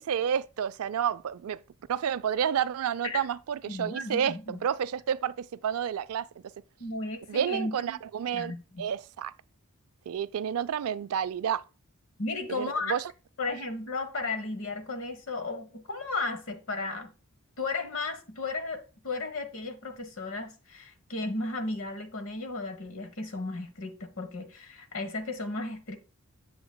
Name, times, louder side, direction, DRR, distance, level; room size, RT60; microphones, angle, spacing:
voice 1, 0.0-1.6 1.9-6.3 7.3-9.3 10.1-11.6 12.5-13.1, right 8 dB, 80° right, 0.3 m, -30 dB
voice 2, 3.7-4.6 6.8-8.0 8.3-8.9 12.2-13.0 13.4-17.1 17.6-26.0, left 3 dB, 65° left, 1.2 m, -34 dB
7.8 x 7.1 x 2.2 m
head